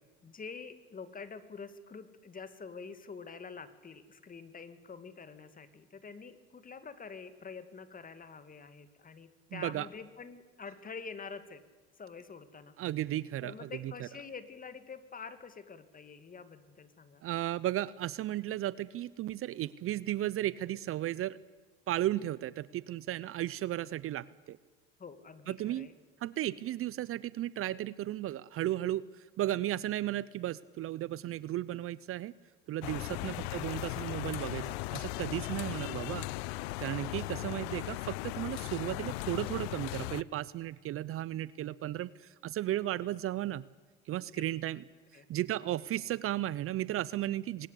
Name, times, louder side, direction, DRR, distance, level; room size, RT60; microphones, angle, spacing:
voice 1, 0.2-11.6 12.0-12.7 13.4-17.2 25.0-25.9 33.1-33.9 44.1-44.5 45.1-45.3, left 5 dB, 30° left, 12 dB, 2.2 m, -47 dB
voice 2, 9.5-9.9 12.8-14.1 17.2-21.4 21.9-24.6 25.5-25.9 26.2-32.3 32.7-36.3 36.8-43.6 44.1-44.8 45.3-47.7, right 13 dB, 45° right, 20 dB, 0.7 m, -35 dB
sound 1, 32.8-40.2, left 19 dB, 85° left, 0.6 m, -37 dB
23.0 x 19.5 x 8.4 m, 1.4 s
supercardioid pair, 90°, 30 cm